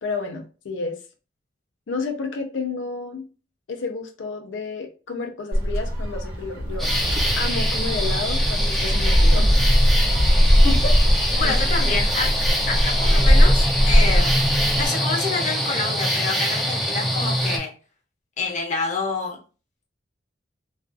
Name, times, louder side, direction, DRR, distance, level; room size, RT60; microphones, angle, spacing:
voice 1, 0.0-1.0 1.9-3.2 3.7-6.9 7.4-9.6 11.4-11.6, left 3 dB, 85° left, 4 dB, 0.4 m, -31 dB
Gull seagull, 5.5-14.9, equal, 55° right, 1.0 m, -19 dB
sound 1, 6.8-17.6, equal, ahead, 0.4 m, -24 dB
voice 2, 10.6-10.9 11.4-12.3 12.7-14.4 14.8-17.7 18.4-19.4, left 3 dB, 40° left, 0 dB, 0.7 m, -27 dB
2.4 x 2.3 x 2.5 m, 0.35 s
head